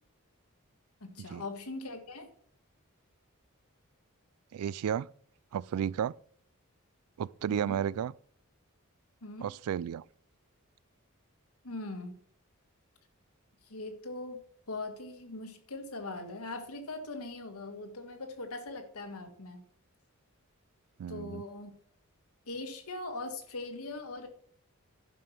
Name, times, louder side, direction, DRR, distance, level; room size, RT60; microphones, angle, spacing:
voice 1, 1.0-2.3 7.5-7.8 9.2-9.5 11.6-12.2 13.7-14.4 14.7-19.6 21.1-21.8 22.5-24.3, left 2 dB, 80° left, 1.7 m, -41 dB
voice 2, 4.5-5.1 5.5-6.1 7.2-8.1 9.4-10.0 21.0-21.4, right 8 dB, 75° right, 0.3 m, -32 dB
11.0 x 5.3 x 6.0 m
head